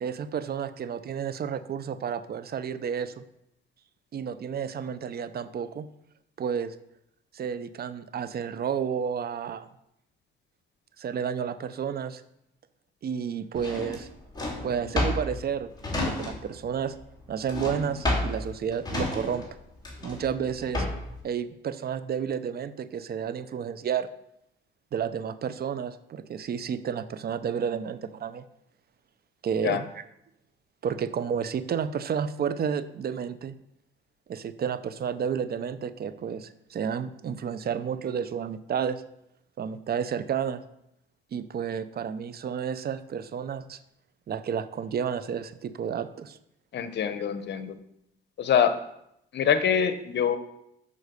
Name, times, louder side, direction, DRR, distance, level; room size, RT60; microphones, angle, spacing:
voice 1, 0.0-3.2 4.1-5.9 6.4-6.7 7.3-9.7 11.0-12.2 13.0-14.1 14.6-15.7 16.0-17.0 17.3-19.4 20.0-20.9 21.2-24.1 24.9-28.5 29.4-30.0 30.8-33.5 34.3-39.0 39.6-40.6 41.3-43.8 44.3-46.4, right 7 dB, 50° right, 13 dB, 0.7 m, -31 dB
Drawer open or close, 13.6-16.7 16.9-21.2, left 1 dB, 20° left, 3.0 m, -31 dB
voice 2, 46.7-47.7 48.4-48.8 49.3-50.4, left 8 dB, 60° left, 11 dB, 1.0 m, -24 dB
8.3 x 5.4 x 6.8 m, 0.79 s
cardioid pair, 90°, 20 cm